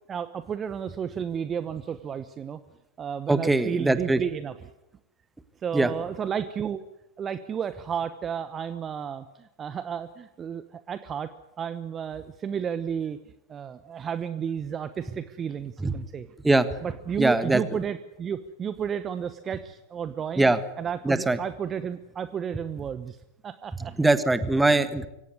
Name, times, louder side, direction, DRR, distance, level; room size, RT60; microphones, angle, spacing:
voice 1, 0.1-2.6 3.0-4.7 5.6-6.8 7.2-11.3 11.6-13.2 13.5-16.3 16.8-20.5 20.8-23.2 23.4-24.0, right 8 dB, 25° right, 13 dB, 1.0 m, -32 dB
voice 2, 3.3-4.2 5.7-5.9 15.8-15.9 16.4-16.6 17.2-17.6 20.4-20.6 21.0-21.4 24.0-25.1, right 2 dB, 5° right, 13 dB, 1.6 m, -21 dB
24.0 x 17.5 x 9.6 m, 0.90 s
figure-of-eight pair, 90°, 0 cm